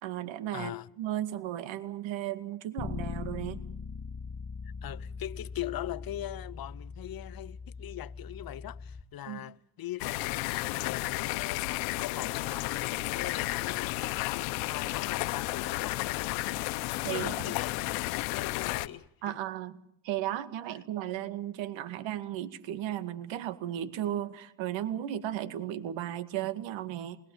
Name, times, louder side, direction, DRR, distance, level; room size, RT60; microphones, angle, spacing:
voice 1, 0.0-3.6 9.3-9.4 17.0-17.5 19.2-19.8 20.0-27.2, right 12 dB, 80° right, 2.2 m, -35 dB
voice 2, 0.5-0.9 4.8-19.4, left 13 dB, 50° left, 0.9 m, -41 dB
Bass guitar, 2.8-9.0, left 5 dB, 30° left, 2.2 m, -41 dB
sound 1, 10.0-18.9, left 20 dB, 90° left, 1.1 m, -32 dB
27.5 x 21.5 x 7.3 m
supercardioid pair, 75°, 45 cm